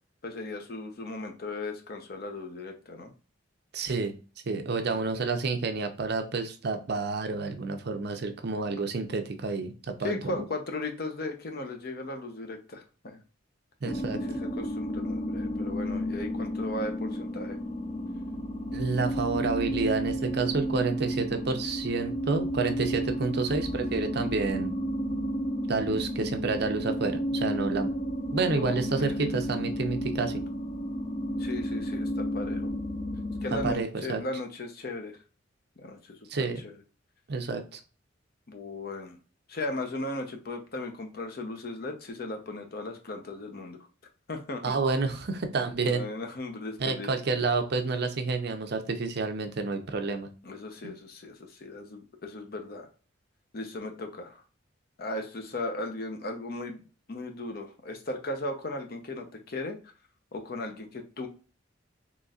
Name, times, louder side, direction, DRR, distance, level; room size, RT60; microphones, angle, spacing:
voice 1, 0.2-3.1 4.8-5.1 10.0-13.2 14.1-17.6 28.5-29.2 31.4-32.7 33.4-35.2 35.8-36.2 36.6-36.7 38.5-39.2 39.5-43.8 44.3-44.8 45.8-47.1 50.4-52.9 53.5-54.4 55.0-56.8 57.1-59.8 60.3-61.3, left 2 dB, 55° left, 4 dB, 0.7 m, -37 dB
voice 2, 3.7-4.1 4.5-10.4 13.8-14.2 18.7-24.7 25.7-27.9 28.3-30.4 33.6-34.2 36.3-36.6 37.3-37.8 44.6-46.0 46.8-50.3 50.8-50.9, right 4 dB, 60° right, 6 dB, 0.6 m, -29 dB
sound 1, 13.9-33.7, equal, 30° left, 0.5 m, -32 dB
4.0 x 3.1 x 2.4 m, 0.35 s
head